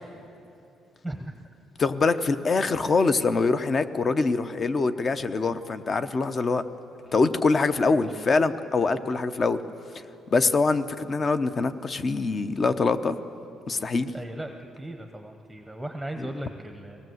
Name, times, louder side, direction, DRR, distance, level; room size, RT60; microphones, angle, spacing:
voice 1, 1.8-6.6 7.1-9.6 10.3-13.2 13.7-14.1 16.2-16.3, left 4 dB, 30° left, 11 dB, 0.8 m, -24 dB
voice 2, 14.1-17.0, right 1 dB, ahead, 4 dB, 0.9 m, -37 dB
23.0 x 18.0 x 7.9 m, 2.8 s
cardioid pair, 140°, 0 cm